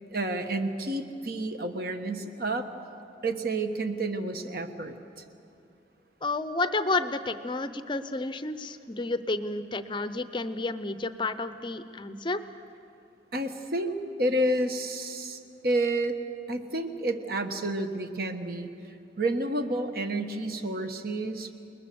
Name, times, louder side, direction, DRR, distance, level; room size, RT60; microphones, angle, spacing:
voice 1, 0.1-2.7 3.2-5.0 13.3-16.2 16.5-18.7 19.2-21.5, right 1 dB, 55° right, 7 dB, 1.4 m, -30 dB
voice 2, 6.2-12.4, left 2 dB, 25° left, 12 dB, 0.6 m, -31 dB
28.5 x 20.5 x 7.0 m, 2.7 s
head